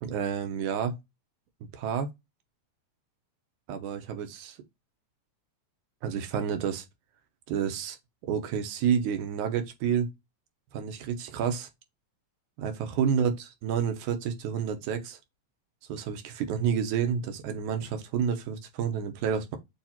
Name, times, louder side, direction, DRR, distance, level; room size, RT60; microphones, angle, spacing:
voice 1, 0.0-1.0 1.7-2.1 3.7-4.6 6.0-6.9 7.5-8.0 8.3-10.1 10.7-11.7 12.6-15.2 15.9-19.6, right 7 dB, 90° right, 2.3 m, -29 dB
7.0 x 2.4 x 2.8 m
omnidirectional pair, 3.4 m